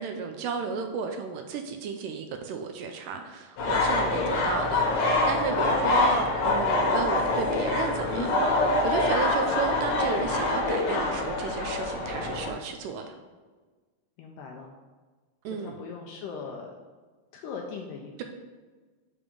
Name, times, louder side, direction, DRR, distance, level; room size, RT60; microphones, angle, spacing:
voice 1, 0.0-8.3 8.8-13.2 15.4-15.8, right 6 dB, 85° right, 5 dB, 1.9 m, -33 dB
sound 1, 3.6-12.5, left 2 dB, 65° left, 2.2 m, -25 dB
voice 2, 14.2-14.7 15.5-16.7 17.3-18.2, left 5 dB, 80° left, 0 dB, 2.0 m, -39 dB
6.8 x 3.6 x 5.2 m, 1.4 s
omnidirectional pair, 4.2 m